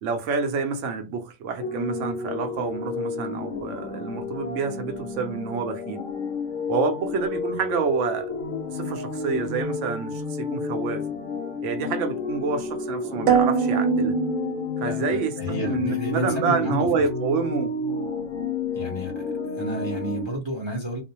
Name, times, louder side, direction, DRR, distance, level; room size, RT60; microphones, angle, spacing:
voice 1, 0.0-6.0 6.7-8.3 8.7-11.1 11.6-14.1 14.8-17.8, right 5 dB, 65° right, 0.8 m, -28 dB
sound 1, 1.6-20.3, left 4 dB, 70° left, 0.9 m, -31 dB
sound 2, 13.3-15.2, right 9 dB, 90° right, 1.1 m, -23 dB
voice 2, 14.9-16.9 18.7-21.0, right 1 dB, 30° right, 0.5 m, -31 dB
2.4 x 2.1 x 2.8 m
omnidirectional pair, 1.5 m